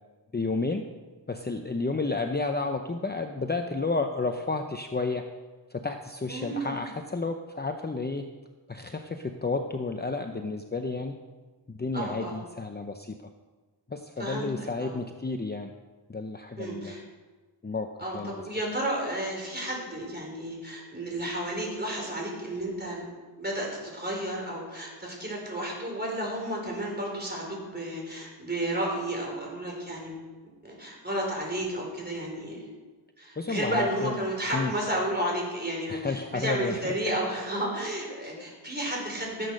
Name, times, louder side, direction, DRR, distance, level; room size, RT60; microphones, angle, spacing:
voice 1, 0.3-0.9 1.3-5.2 5.7-8.2 8.7-11.1 11.7-13.1 13.9-15.7 16.1-17.1 17.6-17.9 18.1-18.3 33.4-34.2 34.5-34.7 35.9-36.9, left 3 dB, 25° left, 5 dB, 0.7 m, -31 dB
voice 2, 6.3-6.8 11.9-12.4 14.2-14.9 16.6-17.0 18.0-23.0 23.4-30.1 30.6-32.6 33.2-39.5, right 1 dB, 25° right, -1 dB, 4.4 m, -32 dB
15.5 x 8.3 x 6.5 m, 1.4 s
wide cardioid pair, 100°, 43 cm